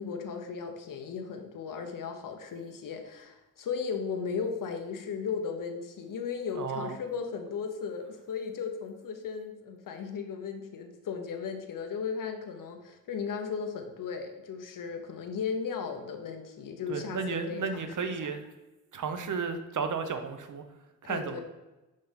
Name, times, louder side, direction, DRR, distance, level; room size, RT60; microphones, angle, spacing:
voice 1, 0.0-18.1 21.0-21.4, left 6 dB, 80° left, 5 dB, 0.9 m, -36 dB
voice 2, 6.5-7.0 16.9-18.4 18.9-20.6 21.0-21.4, right 5 dB, 65° right, 8 dB, 0.9 m, -33 dB
5.4 x 5.3 x 5.1 m, 1.1 s
wide cardioid pair, 105°, 32 cm